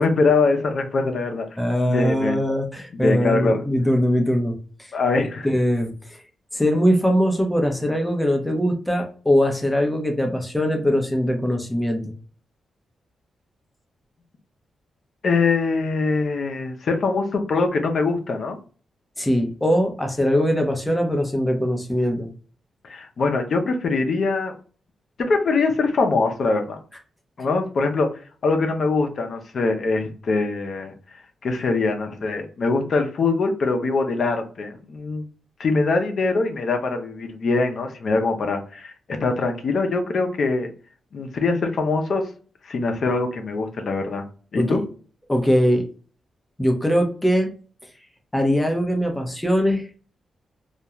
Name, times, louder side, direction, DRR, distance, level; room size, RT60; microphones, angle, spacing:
voice 1, 0.0-1.5 1.9-2.4 3.0-3.6 4.9-5.5 15.2-18.6 22.8-24.5 25.2-26.8 27.4-28.1 28.4-30.9 31.4-35.2 35.6-40.7 41.1-42.3 42.6-44.2 44.5-44.8, left 3 dB, 60° left, 5 dB, 0.6 m, -23 dB
voice 2, 1.6-4.9 5.4-6.2 6.5-12.1 19.2-22.3 44.6-44.8 45.3-45.8 46.6-47.5 48.3-49.8, equal, 10° left, 3 dB, 0.7 m, -21 dB
2.4 x 2.2 x 2.9 m, 0.39 s
cardioid pair, 90°, 0 cm